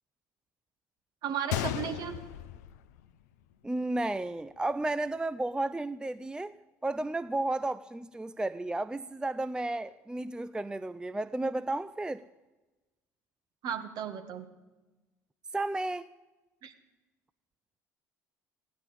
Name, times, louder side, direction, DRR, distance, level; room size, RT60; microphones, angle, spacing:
voice 1, 1.2-2.1 13.6-14.5 16.6-16.7, right 8 dB, 55° right, 1.7 m, -35 dB
Gunshot gunfire, 1.5-3.5 3.8-3.9 4.6-4.8, left 13 dB, 70° left, 0.6 m, -36 dB
voice 2, 3.6-6.6 6.8-12.2 15.5-16.1, right 2 dB, 10° right, 0.4 m, -33 dB
16.0 x 10.0 x 8.5 m
figure-of-eight pair, 60°, 9 cm